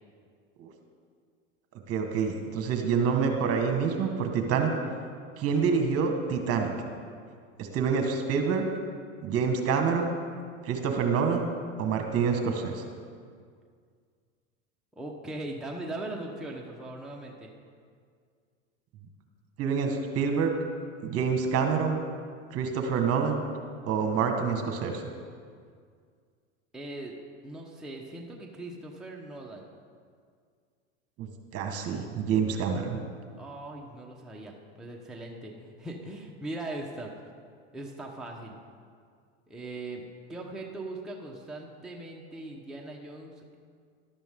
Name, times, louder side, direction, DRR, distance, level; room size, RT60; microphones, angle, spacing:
voice 1, 1.9-4.7 5.4-6.7 7.6-8.6 9.2-10.2 10.6-11.5 11.8-12.8 19.6-20.5 21.0-22.0 22.5-23.4 23.9-25.0 31.2-33.0, right 6 dB, 40° right, 4 dB, 1.6 m, -27 dB
voice 2, 14.9-17.5 26.7-27.1 27.4-29.6 33.4-37.1 37.7-38.6 39.5-40.0 40.3-43.6, right 2 dB, ahead, -2 dB, 1.1 m, -40 dB
13.0 x 11.5 x 3.8 m, 2.1 s
hypercardioid pair, 110°, 35 cm